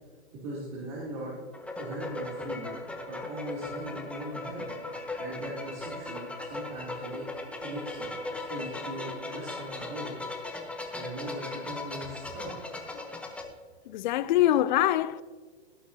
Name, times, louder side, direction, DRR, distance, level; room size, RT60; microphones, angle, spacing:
voice 1, 0.4-1.4 1.7-2.7 3.1-4.7 5.2-7.2 7.6-10.2 10.9-12.5, right 1 dB, 45° right, 2.9 m, -39 dB
sound 1, 1.5-13.4, left 2 dB, 5° left, 0.9 m, -38 dB
voice 2, 13.9-15.2, left 13 dB, 45° left, 0.5 m, -24 dB
17.0 x 8.1 x 2.8 m
hypercardioid pair, 130°, 34 cm